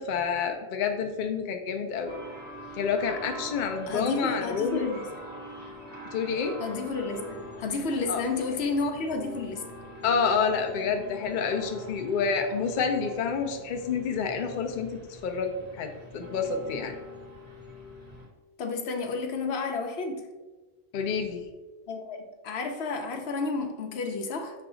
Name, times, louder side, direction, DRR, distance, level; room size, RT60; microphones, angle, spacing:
voice 1, 0.0-2.1 2.8-4.9 6.1-6.5 8.1-8.2 10.0-17.0 20.9-21.5, left 5 dB, 60° left, 4 dB, 0.6 m, -28 dB
sound 1, 2.0-18.3, left 1 dB, 10° right, 1.0 m, -43 dB
voice 2, 3.9-5.0 6.6-9.6 18.6-20.2 21.9-24.5, left 3 dB, 85° left, 4 dB, 0.9 m, -31 dB
5.8 x 2.4 x 3.7 m, 1.2 s
omnidirectional pair, 1.0 m